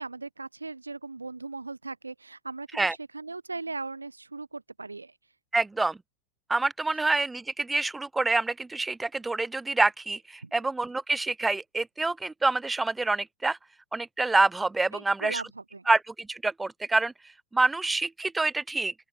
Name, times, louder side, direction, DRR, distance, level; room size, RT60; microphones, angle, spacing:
voice 1, 0.0-5.1 10.4-10.5 14.9-15.9, right 3 dB, 80° right, 6.9 m, -38 dB
voice 2, 5.5-6.0 6.5-13.6 13.9-15.4 15.9-16.0 16.3-17.1 17.5-18.9, right 3 dB, 10° right, 1.3 m, -26 dB
open air
figure-of-eight pair, 90°, 0 cm